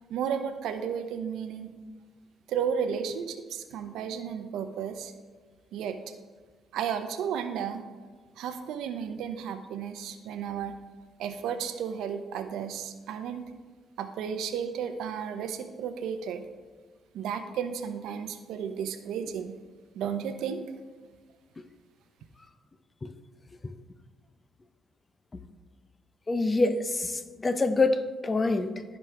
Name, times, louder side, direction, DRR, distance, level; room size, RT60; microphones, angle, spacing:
voice 1, 0.1-1.7 2.5-5.1 5.7-6.0 6.7-7.8 8.4-10.7 11.2-13.4 14.0-16.5 17.1-19.6 19.9-20.6, right 7 dB, 85° right, 8 dB, 0.7 m, -33 dB
voice 2, 26.3-29.0, left 3 dB, 25° left, 11 dB, 0.6 m, -26 dB
14.5 x 5.1 x 3.4 m, 1.5 s
cardioid pair, 90°, 0 cm